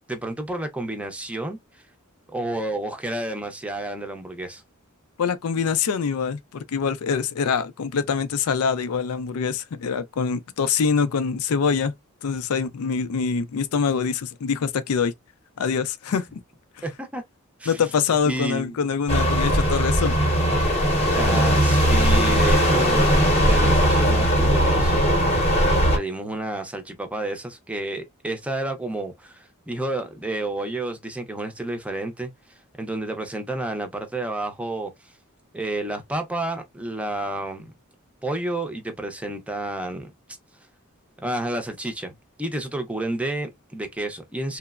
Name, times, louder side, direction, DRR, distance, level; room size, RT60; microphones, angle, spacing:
voice 1, 0.1-1.8 2.3-4.6 16.8-17.2 17.6-17.8 18.3-18.8 21.1-25.0 25.9-32.3 32.8-35.1 35.5-37.7 38.2-40.1 41.2-44.6, right 2 dB, 5° right, 0.5 m, -30 dB
voice 2, 5.2-11.9 12.2-15.1 15.6-16.4 17.7-20.2, left 6 dB, 80° left, 0.4 m, -24 dB
sound 1, 19.1-26.0, equal, 30° left, 0.8 m, -19 dB
3.1 x 2.0 x 2.3 m
head